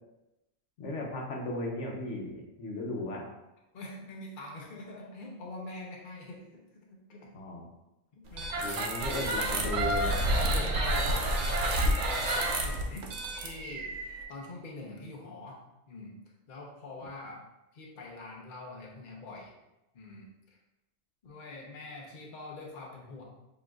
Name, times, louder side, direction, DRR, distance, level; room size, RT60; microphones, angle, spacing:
voice 1, 0.8-3.2 7.3-7.6 8.6-10.2, left 2 dB, 80° left, -1 dB, 1.2 m, -36 dB
voice 2, 3.7-7.3 8.1-8.7 10.3-15.6 15.9-16.1 16.5-17.4 17.7-19.5 19.9-20.3 21.2-23.2, left 2 dB, 50° left, -1 dB, 0.9 m, -44 dB
sound 1, 8.3-14.2, right 1 dB, 70° right, 1.0 m, -29 dB
7.4 x 3.0 x 2.3 m, 0.94 s
omnidirectional pair, 1.2 m